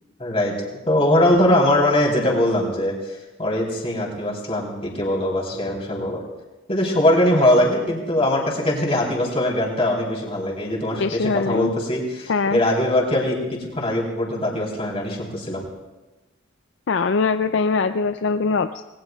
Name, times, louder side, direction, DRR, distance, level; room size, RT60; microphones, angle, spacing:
voice 1, 0.2-0.6 0.9-3.0 3.4-6.2 6.7-13.4 13.7-15.7, left 1 dB, 30° left, -2 dB, 3.5 m, -21 dB
voice 2, 10.9-11.7 12.3-12.6 16.9-18.8, left 4 dB, 55° left, 9 dB, 0.4 m, -22 dB
27.5 x 20.0 x 2.4 m, 1.1 s
head